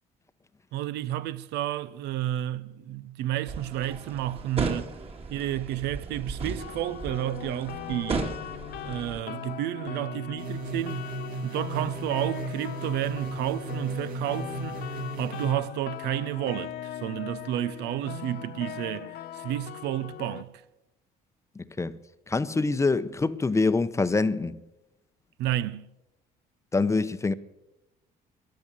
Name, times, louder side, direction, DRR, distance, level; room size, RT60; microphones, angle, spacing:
voice 1, 0.7-4.9 5.3-8.3 8.8-11.0 11.4-14.9 15.2-20.6 25.4-25.9, right 13 dB, 85° right, 0.7 m, -31 dB
sound 1, 3.5-9.2, right 3 dB, 35° right, 2.0 m, -35 dB
sound 2, 6.6-20.4, left 11 dB, 70° left, 1.0 m, -40 dB
sound 3, 10.4-15.5, right 2 dB, 60° right, 2.1 m, -35 dB
voice 2, 21.6-22.0 22.3-24.6 26.7-27.3, left 3 dB, 15° left, 0.7 m, -25 dB
15.5 x 10.5 x 8.9 m
cardioid pair, 110°, 17 cm